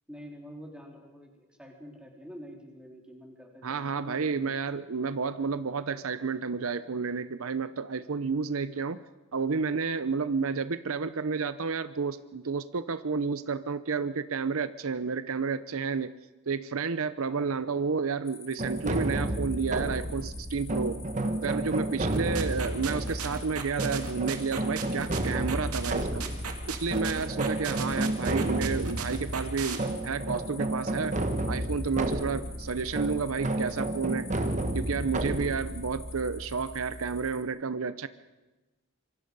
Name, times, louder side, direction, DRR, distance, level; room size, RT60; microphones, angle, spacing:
voice 1, 0.1-4.6 10.2-10.3 17.2-17.4 21.2-21.4 22.1-22.4 27.4-27.6 32.3-32.4, equal, 5° right, 0 dB, 3.8 m, -47 dB
voice 2, 3.6-9.0 9.3-16.1 16.5-21.0 21.4-26.3 26.7-31.2 31.5-34.3 34.7-38.1, right 5 dB, 65° right, 13 dB, 0.7 m, -31 dB
sound 1, 18.2-37.4, left 5 dB, 15° left, 1.9 m, -49 dB
sound 2, 18.6-37.3, right 1 dB, 35° right, 1.4 m, -32 dB
sound 3, 22.1-29.8, right 6 dB, 85° right, 2.4 m, -36 dB
26.0 x 24.0 x 5.4 m, 1.1 s
head